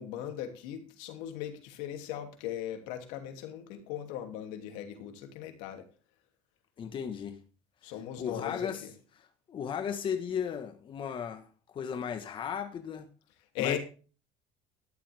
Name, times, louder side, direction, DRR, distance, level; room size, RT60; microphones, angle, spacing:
voice 1, 0.0-5.8 7.8-8.9 13.5-13.8, left 10 dB, 80° left, 2.9 m, -38 dB
voice 2, 6.8-7.4 8.2-8.9 9.2-13.1 13.6-13.8, left 7 dB, 40° left, 1.6 m, -36 dB
13.5 x 11.0 x 3.6 m
supercardioid pair, 110°, 13 cm